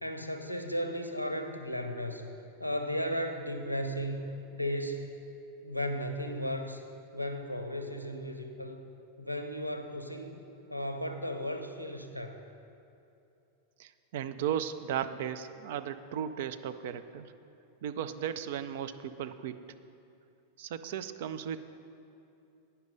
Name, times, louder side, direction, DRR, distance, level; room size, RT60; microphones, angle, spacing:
voice 1, 0.0-2.3 2.6-4.2 4.5-5.0 5.6-6.8 7.1-8.8 9.2-10.4 10.7-12.4, equal, 90° left, 6 dB, 0.6 m, -35 dB
voice 2, 13.8-17.3 17.8-19.6 20.6-21.6, right 9 dB, 55° right, 11 dB, 0.4 m, -36 dB
9.3 x 5.6 x 6.5 m, 2.7 s
figure-of-eight pair, 90°, 0 cm